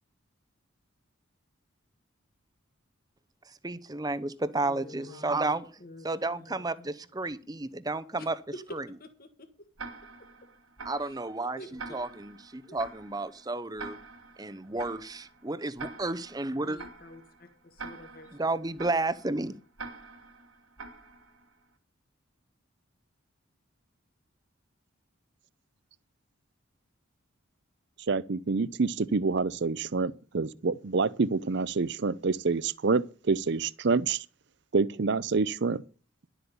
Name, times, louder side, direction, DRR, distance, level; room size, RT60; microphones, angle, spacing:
voice 1, 3.6-5.6 6.0-8.3 8.7-8.8 10.8-14.0 14.4-16.8 18.4-19.5, right 2 dB, 20° right, 0.7 m, -32 dB
voice 2, 4.7-6.9 8.2-8.6 9.0-9.1 11.0-11.2 11.6-12.3 12.7-12.8 16.6-17.2 17.6-18.3 19.4-19.6, left 1 dB, 45° left, 1.7 m, -48 dB
Tick-tock, 9.8-21.6, right 3 dB, 85° right, 2.7 m, -46 dB
voice 3, 28.1-34.2 34.7-35.8, right 4 dB, 55° right, 0.6 m, -27 dB
12.0 x 8.0 x 6.9 m
head